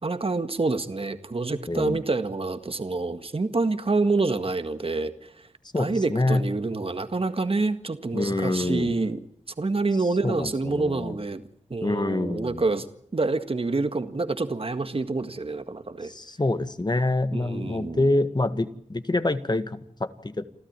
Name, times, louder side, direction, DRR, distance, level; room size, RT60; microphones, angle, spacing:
voice 1, 0.0-5.5 5.8-9.2 9.6-11.4 11.7-12.9 13.1-16.1 17.3-18.1, right 3 dB, 50° right, 9 dB, 1.8 m, -27 dB
voice 2, 1.7-2.0 5.7-6.4 8.1-8.9 10.2-11.2 11.8-12.6 16.0-20.4, left 2 dB, 35° left, 11 dB, 1.8 m, -26 dB
29.0 x 13.0 x 8.9 m, 0.68 s
cardioid pair, 45°, 13 cm